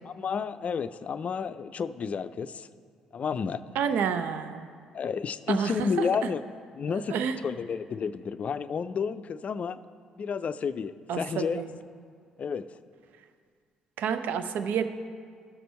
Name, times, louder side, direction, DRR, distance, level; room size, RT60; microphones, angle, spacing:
voice 1, 0.0-2.7 3.1-3.6 4.9-6.4 6.8-7.1 7.4-9.8 10.2-11.6 12.4-12.7, left 6 dB, 40° left, 14 dB, 0.4 m, -31 dB
voice 2, 3.7-4.7 5.5-6.3 7.1-7.4 11.1-11.7 14.0-14.9, right 7 dB, 60° right, 9 dB, 0.6 m, -29 dB
13.5 x 6.8 x 4.2 m, 2.1 s
figure-of-eight pair, 45°, 3 cm